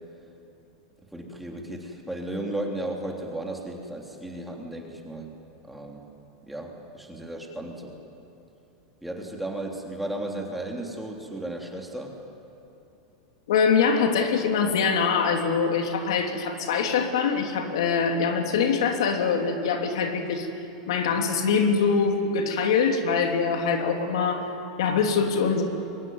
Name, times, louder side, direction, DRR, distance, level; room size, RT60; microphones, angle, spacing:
voice 1, 1.1-5.3 5.6-6.1 6.5-8.0 9.0-12.2, right 1 dB, 5° right, 0 dB, 3.3 m, -34 dB
voice 2, 13.5-20.5 20.9-24.5 24.8-25.6, left 5 dB, 80° left, 3 dB, 3.1 m, -23 dB
24.5 x 23.0 x 9.6 m, 2.8 s
supercardioid pair, 145°, 3 cm